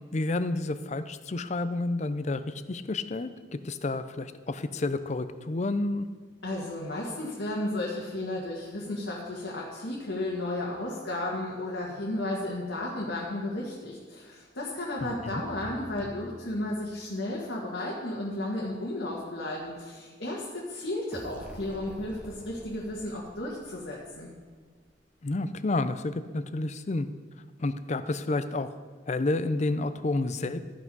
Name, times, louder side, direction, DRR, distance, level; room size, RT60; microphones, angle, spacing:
voice 1, 0.1-6.1 15.0-15.3 25.2-27.1 27.6-28.7 29.1-30.6, left 2 dB, 40° left, 12 dB, 0.5 m, -30 dB
voice 2, 6.4-24.3, left 1 dB, 75° left, -4 dB, 1.7 m, -33 dB
sound 1, 15.0-17.2, right 1 dB, 30° right, 1.0 m, -47 dB
sound 2, 21.1-24.8, equal, 5° right, 0.9 m, -47 dB
13.5 x 6.0 x 5.4 m, 1.5 s
head